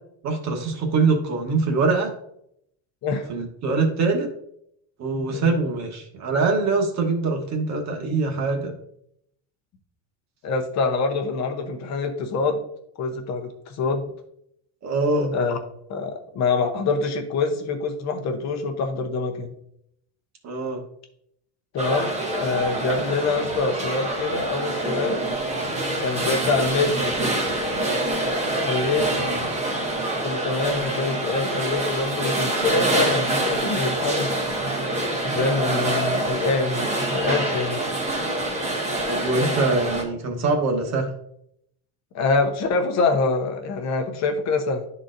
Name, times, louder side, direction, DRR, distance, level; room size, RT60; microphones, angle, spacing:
voice 1, 0.2-2.1 3.3-4.3 5.0-8.7 14.8-15.3 20.4-20.8 29.2-29.5 39.1-41.1, right 3 dB, 35° right, 3 dB, 1.2 m, -23 dB
voice 2, 10.4-12.6 13.0-14.0 15.3-15.6 15.9-19.5 21.7-25.3 26.0-27.4 28.6-29.3 30.2-34.3 35.2-36.8 37.1-38.0 42.1-44.8, left 3 dB, 35° left, 5 dB, 0.8 m, -25 dB
sound 1, 21.8-40.0, right 2 dB, 15° right, 0.8 m, -26 dB
11.5 x 4.0 x 2.6 m, 0.72 s
cardioid pair, 175°, 46 cm